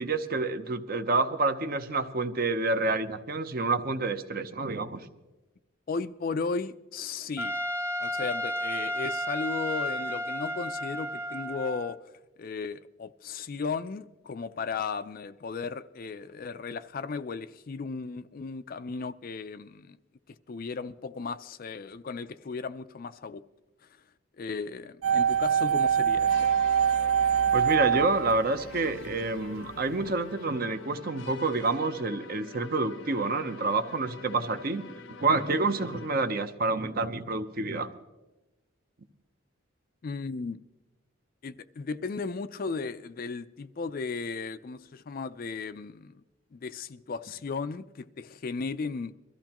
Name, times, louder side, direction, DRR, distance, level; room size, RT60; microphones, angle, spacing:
voice 1, 0.0-5.0 27.5-34.9 35.2-37.9, right 3 dB, 45° right, 0.8 m, -28 dB
voice 2, 5.9-7.5 8.0-12.0 12.4-20.0 20.5-23.4 24.4-26.3 40.0-40.6 41.4-46.1 46.5-49.1, left 4 dB, 45° left, 0.4 m, -35 dB
Trumpet, 7.4-12.0, equal, 10° right, 1.0 m, -32 dB
sound 1, 25.0-29.1 29.4-29.5, right 8 dB, 70° right, 0.4 m, -24 dB
sound 2, 26.2-36.4, left 3 dB, 70° left, 0.7 m, -46 dB
22.5 x 14.0 x 3.0 m
head